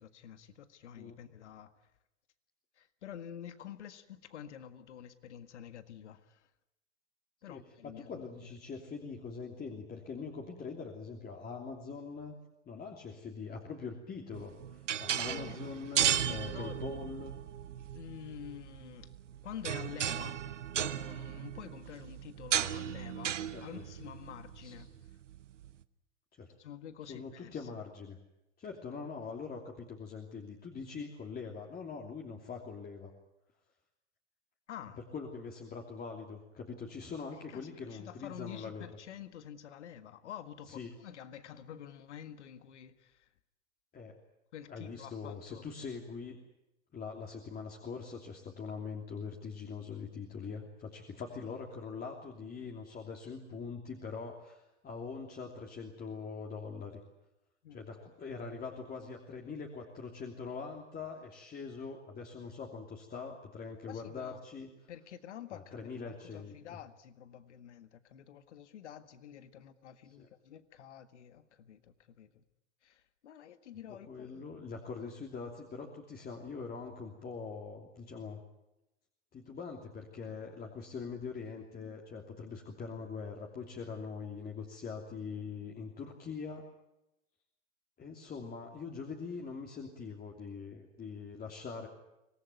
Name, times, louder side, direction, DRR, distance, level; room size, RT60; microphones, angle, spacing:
voice 1, 0.0-1.9 2.8-6.5 7.4-8.5 15.2-15.6 16.0-16.8 17.9-19.1 19.4-20.5 20.8-25.2 26.6-27.7 34.7-35.0 37.5-43.3 44.5-45.7 57.6-57.8 63.9-64.4 64.9-72.4 72.8-74.5, left 9 dB, 70° left, 12 dB, 1.8 m, -48 dB
voice 2, 8.0-12.4 12.7-17.3 23.5-23.6 24.6-24.7 26.4-26.5 27.1-28.2 28.6-33.1 35.1-38.9 40.7-40.9 43.9-44.2 44.7-46.4 46.9-57.0 57.7-64.7 65.5-66.5 70.1-70.3 74.1-78.4 79.3-86.7 88.0-91.9, left 5 dB, 25° left, 1 dB, 3.1 m, -43 dB
sound 1, 14.3-25.7, right 10 dB, 80° right, 1.1 m, -36 dB
25.0 x 18.5 x 9.4 m, 0.91 s
hypercardioid pair, 95°, 36 cm